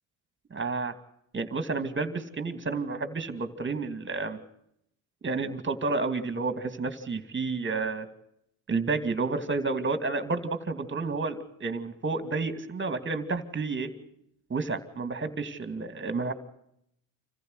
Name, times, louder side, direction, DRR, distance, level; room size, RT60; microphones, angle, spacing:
voice 1, 0.5-0.9 1.3-4.4 5.2-8.1 8.7-13.9 14.5-16.3, right 3 dB, 25° right, 10 dB, 2.5 m, -30 dB
27.0 x 15.0 x 8.1 m, 0.76 s
cardioid pair, 95°, 49 cm